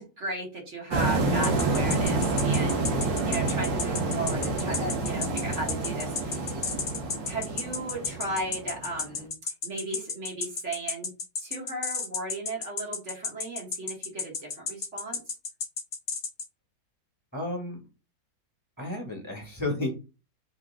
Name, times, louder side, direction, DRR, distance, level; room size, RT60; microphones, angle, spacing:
voice 1, 0.0-6.6 7.3-11.1 11.4-15.2, right 1 dB, 45° right, 0 dB, 1.6 m, -36 dB
sound 1, 0.9-9.2, right 3 dB, 85° right, 1.9 m, -28 dB
sound 2, 1.4-16.5, left 5 dB, 50° left, 0.7 m, -32 dB
voice 2, 17.3-17.8 18.8-19.9, left 1 dB, 5° right, -1 dB, 2.0 m, -32 dB
4.0 x 3.7 x 3.6 m, 0.30 s
omnidirectional pair, 1.9 m